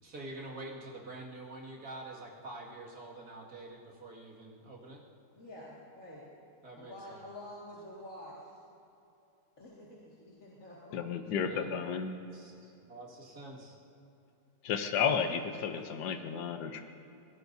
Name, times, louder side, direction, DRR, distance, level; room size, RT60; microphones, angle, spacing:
voice 1, 0.0-5.0 6.6-7.2 11.4-13.8, right 2 dB, 65° right, -3 dB, 2.7 m, -47 dB
voice 2, 5.3-6.2 6.7-8.6 9.6-11.0 15.6-15.7, left 1 dB, 50° left, -6 dB, 2.5 m, -48 dB
voice 3, 10.9-12.2 14.6-16.8, left 6 dB, 85° left, 6 dB, 1.4 m, -32 dB
23.5 x 17.5 x 2.7 m, 2.8 s
omnidirectional pair, 1.7 m